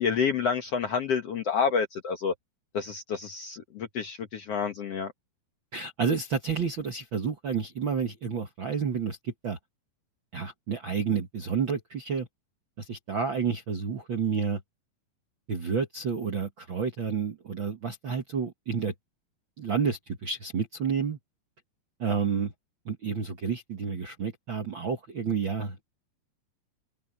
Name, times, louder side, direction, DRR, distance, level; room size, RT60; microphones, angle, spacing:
voice 1, 0.0-2.3 2.7-5.1, left 6 dB, 60° left, 1.8 m, -29 dB
voice 2, 5.7-9.6 10.3-12.3 12.8-14.6 15.5-18.9 19.6-21.2 22.0-22.5 22.8-25.8, right 6 dB, 50° right, 1.4 m, -30 dB
omnidirectional pair, 4.3 m